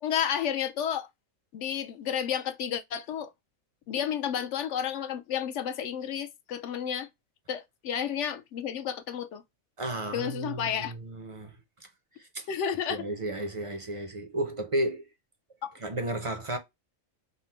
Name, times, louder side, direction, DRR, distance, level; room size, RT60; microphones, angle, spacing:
voice 1, 0.0-1.1 1.5-3.3 3.9-7.1 7.5-9.4 10.1-10.9 12.5-13.0 15.6-15.7, left 8 dB, 70° left, 0.9 m, -31 dB
voice 2, 9.8-11.5 12.3-12.5 12.9-15.0 15.8-16.6, right 1 dB, 40° right, 0.5 m, -33 dB
3.9 x 2.0 x 4.3 m
omnidirectional pair, 1.4 m